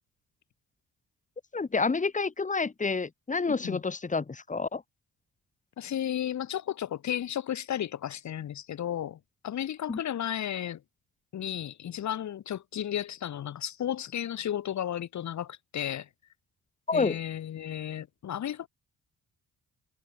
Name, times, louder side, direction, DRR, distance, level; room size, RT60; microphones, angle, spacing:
voice 1, 1.5-4.8 9.9-10.0 16.9-17.2, left 4 dB, 25° left, 2.7 m, -29 dB
voice 2, 5.8-10.8 11.3-16.1 16.9-18.7, left 10 dB, 65° left, 6.8 m, -33 dB
cardioid pair, 90°, 30 cm